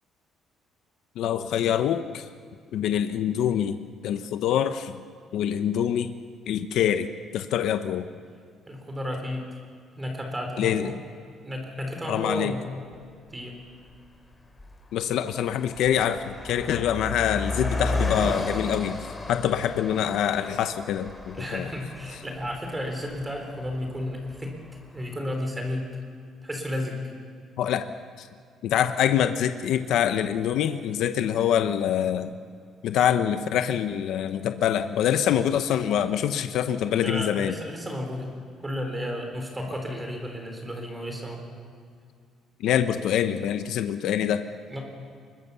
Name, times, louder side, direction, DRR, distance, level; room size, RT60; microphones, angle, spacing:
voice 1, 1.2-2.3 2.7-5.0 5.3-6.1 6.5-8.1 10.6-10.9 12.1-12.5 14.9-21.7 27.6-27.9 28.2-28.3 28.6-32.3 32.8-37.6 42.6-44.4, left 9 dB, 70° left, 9 dB, 0.9 m, -25 dB
voice 2, 8.7-9.5 10.0-11.0 11.4-12.9 13.3-13.6 21.3-24.5 24.9-25.9 26.4-27.0 36.9-38.3 38.6-41.4 44.7-44.8, left 1 dB, 10° right, 3 dB, 4.0 m, -33 dB
Car passing by, 12.9-13.0 13.8-14.1 14.3-24.7, left 2 dB, 15° left, 2.7 m, -34 dB
24.0 x 21.5 x 7.0 m, 2.2 s
cardioid pair, 170°, 0 cm